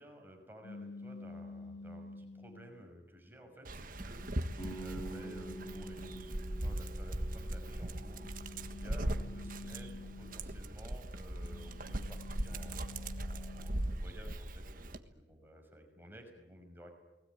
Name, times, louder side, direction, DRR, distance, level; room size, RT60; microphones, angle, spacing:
voice 1, 0.0-8.4 8.8-16.9, equal, 10° right, 3 dB, 5.8 m, -54 dB
sound 1, 0.6-2.8 3.5-6.6 7.7-10.7 11.1-14.1, left 2 dB, 85° left, 1.1 m, -50 dB
Dog, 3.6-15.0, right 1 dB, 50° right, 1.6 m, -39 dB
sound 2, 4.6-10.3, right 2 dB, 25° left, 4.5 m, -48 dB
29.5 x 20.5 x 9.5 m, 1.1 s
head